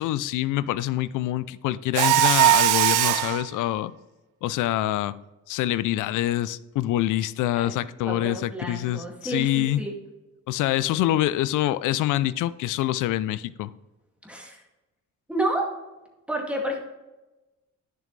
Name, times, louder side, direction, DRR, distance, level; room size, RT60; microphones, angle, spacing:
voice 1, 0.0-3.9 4.4-5.1 5.5-9.8 10.5-13.7, left 14 dB, 85° left, 0.5 m, -25 dB
Mechanisms, 1.9-3.4, right 14 dB, 90° right, 0.6 m, -19 dB
voice 2, 8.0-10.0 14.2-14.6 15.3-15.7 16.3-16.8, right 1 dB, 5° right, 2.2 m, -30 dB
10.5 x 6.9 x 3.2 m
cardioid pair, 90°, 30 cm